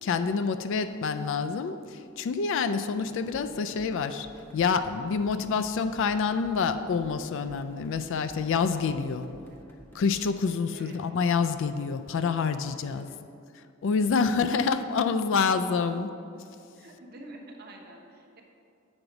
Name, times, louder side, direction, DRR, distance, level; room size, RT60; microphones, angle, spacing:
voice 1, 0.0-1.8 2.2-4.3 4.5-9.4 9.9-13.1 13.8-16.1, left 5 dB, 60° left, 10 dB, 0.3 m, -27 dB
sound 1, 3.0-10.3, equal, 10° left, 0.8 m, -52 dB
voice 2, 9.0-9.6 10.7-11.0 12.9-13.2 14.4-14.8 16.7-18.4, right 1 dB, 50° right, 1 dB, 0.9 m, -48 dB
7.9 x 3.9 x 5.8 m, 2.5 s
head